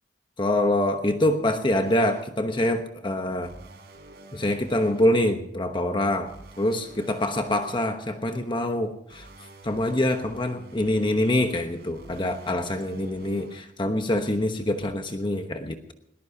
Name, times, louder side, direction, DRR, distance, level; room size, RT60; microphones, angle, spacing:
voice 1, 0.4-3.5 4.3-9.3 9.6-15.9, left 1 dB, 25° left, 6 dB, 1.0 m, -25 dB
sound 1, 1.8-2.2 3.4-5.1 6.3-7.9 9.1-13.6 14.8-14.9, right 2 dB, 60° right, 3.9 m, -48 dB
21.0 x 19.5 x 2.8 m, 0.77 s
head